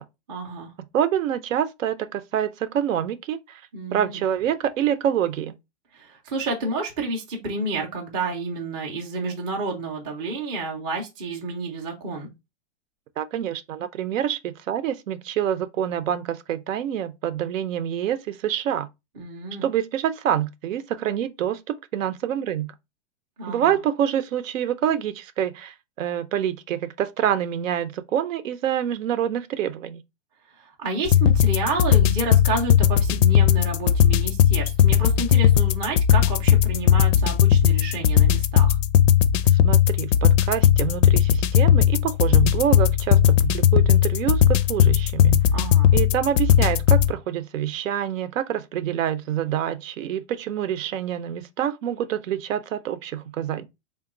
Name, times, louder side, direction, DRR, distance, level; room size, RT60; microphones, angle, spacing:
voice 1, 0.3-0.7 3.7-4.2 5.9-12.3 19.2-19.6 23.4-23.8 30.5-38.8 45.5-45.9, right 3 dB, 15° right, 0.3 m, -30 dB
voice 2, 0.9-3.6 3.9-5.5 13.2-18.9 19.6-22.7 23.5-30.0 39.5-45.4 45.9-53.6, right 10 dB, 90° right, 0.6 m, -26 dB
sound 1, 31.0-47.1, left 9 dB, 75° left, 0.5 m, -18 dB
3.5 x 2.2 x 3.7 m
supercardioid pair, 155°, 38 cm